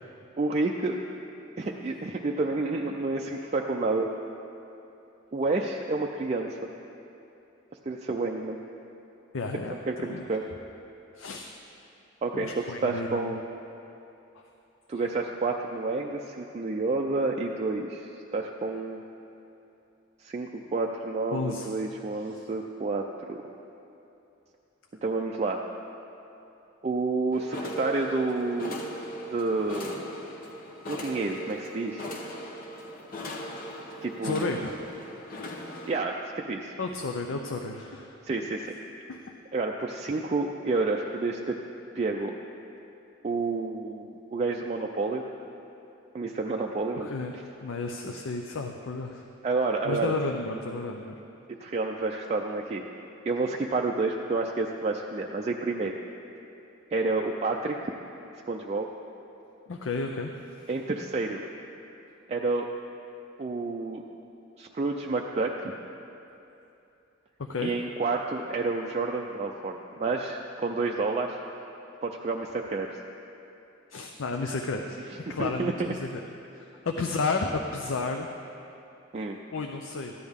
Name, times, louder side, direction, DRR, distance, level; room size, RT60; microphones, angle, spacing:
voice 1, 0.4-1.0 1.6-4.1 5.3-6.6 7.9-8.6 9.7-10.4 12.2-13.4 14.9-19.0 20.2-23.4 25.0-25.6 26.8-28.8 29.3-30.1 30.9-32.1 34.0-34.6 35.8-36.7 38.2-38.7 39.5-41.6 42.0-42.4 43.2-45.2 46.1-47.1 49.4-50.1 51.6-52.9 53.3-56.0 56.9-57.9 58.5-58.9 60.7-61.4 62.3-62.7 63.4-64.0 64.6-65.7 67.6-71.4 72.0-72.9 75.3-75.9 79.1-79.4, right 3 dB, 35° right, 0 dB, 0.4 m, -29 dB
voice 2, 9.3-10.3 11.2-11.5 12.3-13.3 14.3-14.4 21.3-21.7 34.2-34.7 35.3-35.6 36.8-38.1 39.1-39.2 46.9-47.3 47.6-49.2 49.8-51.2 59.7-60.3 67.5-67.7 73.9-76.2 76.5-78.3 79.5-80.1, left 3 dB, 70° left, 3 dB, 0.5 m, -32 dB
sound 1, 27.3-36.0, equal, 45° left, 0.9 m, -39 dB
14.0 x 9.9 x 3.6 m, 2.8 s
head